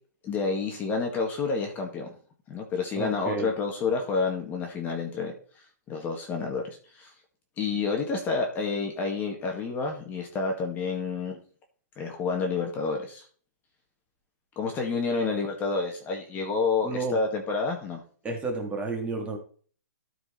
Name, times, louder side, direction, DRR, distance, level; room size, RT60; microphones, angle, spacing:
voice 1, 0.2-2.1 2.5-5.3 5.9-6.6 6.9-7.1 7.6-11.4 12.0-13.2 14.5-18.0, left 4 dB, 20° left, 2 dB, 1.7 m, -29 dB
voice 2, 3.0-3.5 16.8-17.2 18.2-19.4, right 3 dB, 10° right, 2 dB, 1.9 m, -31 dB
13.0 x 4.7 x 4.3 m, 0.43 s
hypercardioid pair, 155°, 10 cm